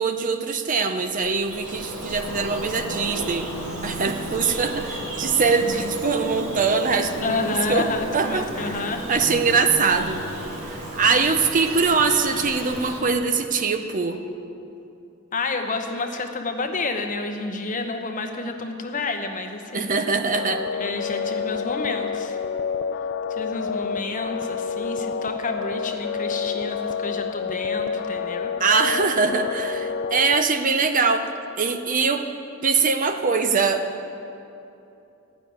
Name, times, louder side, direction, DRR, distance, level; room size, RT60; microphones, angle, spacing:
voice 1, 0.0-3.5 3.8-8.8 9.1-10.2 10.7-14.2 19.7-20.7 28.6-31.3 31.6-32.3 32.6-33.8, right 4 dB, 40° right, 7 dB, 0.6 m, -22 dB
Bird vocalization bird call bird song, 0.9-13.0, right 1 dB, 90° right, 2.7 m, -34 dB
voice 2, 7.2-9.1 15.3-19.9 20.8-22.4 23.3-28.5, left 3 dB, 40° left, 5 dB, 0.9 m, -29 dB
sound 1, 20.3-30.4, left 6 dB, 55° left, 0.3 m, -29 dB
13.5 x 6.2 x 9.4 m, 2.8 s
head